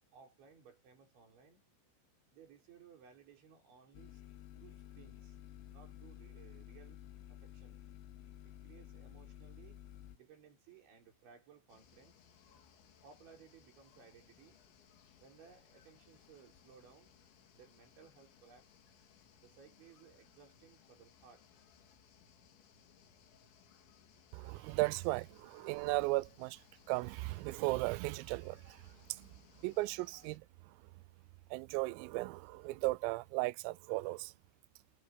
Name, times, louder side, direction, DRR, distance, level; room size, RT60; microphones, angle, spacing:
voice 1, 0.1-1.6 2.3-4.2 4.6-5.4 5.7-7.0 7.3-7.8 8.4-9.8 10.1-12.1 13.0-14.7 15.2-17.2 17.5-18.8 19.4-21.5, right 6 dB, 60° right, 7.2 m, -61 dB
sound 1, 3.9-10.2, left 12 dB, 90° left, 3.9 m, -53 dB
sound 2, 11.7-30.4, left 8 dB, 65° left, 4.7 m, -65 dB
voice 2, 24.3-26.6 26.9-28.8 29.1-29.3 29.6-30.4 31.5-34.3, right 22 dB, 85° right, 3.2 m, -36 dB
omnidirectional pair, 5.9 m